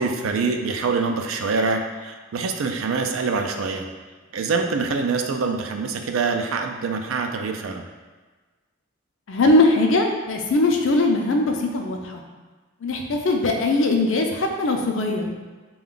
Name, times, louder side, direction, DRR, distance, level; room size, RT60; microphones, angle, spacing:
voice 1, 0.0-3.9 4.3-7.9, right 4 dB, 90° right, 5 dB, 0.4 m, -25 dB
voice 2, 9.3-12.2 12.8-15.3, left 2 dB, 70° left, 2 dB, 0.5 m, -20 dB
4.2 x 2.3 x 3.7 m, 1.3 s
head